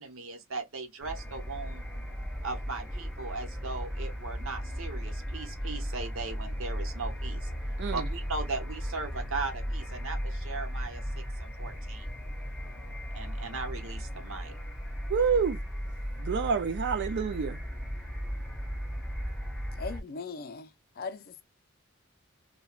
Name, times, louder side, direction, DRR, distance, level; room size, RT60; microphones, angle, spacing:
voice 1, 0.0-1.8 2.4-7.5 7.9-12.1 13.1-14.5, right 4 dB, 75° right, 0.9 m, -38 dB
sound 1, 1.0-20.0, equal, ahead, 0.6 m, -36 dB
voice 2, 15.1-15.6 16.2-17.6, right 6 dB, 55° right, 0.4 m, -28 dB
voice 3, 19.8-20.7 21.0-21.4, left 4 dB, 45° left, 0.4 m, -39 dB
2.3 x 2.2 x 2.9 m
head